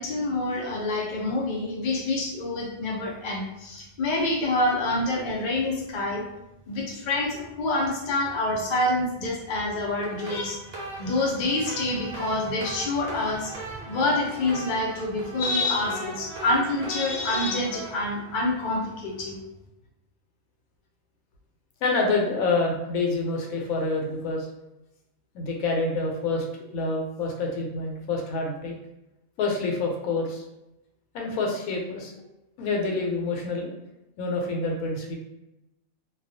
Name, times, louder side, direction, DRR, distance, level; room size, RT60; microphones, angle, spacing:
voice 1, 0.0-6.2 6.7-10.6 11.0-13.5 13.9-19.4, left 2 dB, 55° left, -2 dB, 0.5 m, -27 dB
sound 1, 10.0-19.1, right 2 dB, 55° right, 0.8 m, -39 dB
voice 2, 21.8-24.5 25.3-26.4 26.7-28.7 29.4-30.4 31.1-32.1 32.6-33.7 34.2-35.2, left 3 dB, 90° left, 0 dB, 1.1 m, -27 dB
2.3 x 2.3 x 2.5 m, 0.93 s
omnidirectional pair, 1.5 m